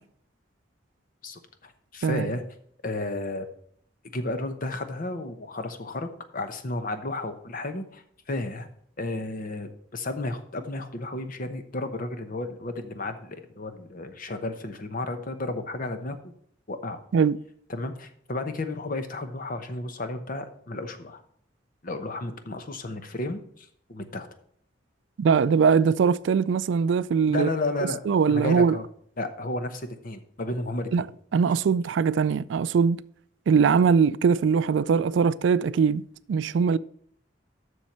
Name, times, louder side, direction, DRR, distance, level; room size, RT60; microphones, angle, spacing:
voice 1, 1.2-2.4 2.8-3.5 4.1-8.0 8.3-8.7 9.0-16.3 16.7-17.0 17.7-21.2 21.8-24.3 27.3-28.0 28.3-28.8 29.2-31.1, left 2 dB, 45° left, 0.9 m, -33 dB
voice 2, 25.2-27.5 28.1-28.8 30.9-31.0 31.3-33.0 33.5-36.0 36.3-36.8, right 6 dB, 70° right, 0.3 m, -21 dB
7.4 x 6.4 x 5.4 m
head